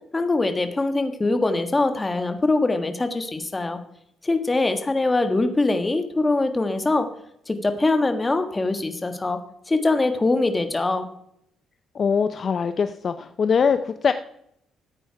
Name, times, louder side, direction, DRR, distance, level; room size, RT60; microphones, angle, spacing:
voice 1, 0.1-3.8 4.2-7.1 7.5-9.4 9.7-11.1, left 2 dB, 20° left, 7 dB, 1.6 m, -23 dB
voice 2, 11.9-14.1, left 6 dB, 50° left, 9 dB, 0.6 m, -22 dB
14.5 x 8.9 x 4.7 m, 0.74 s
cardioid pair, 90°, 0 cm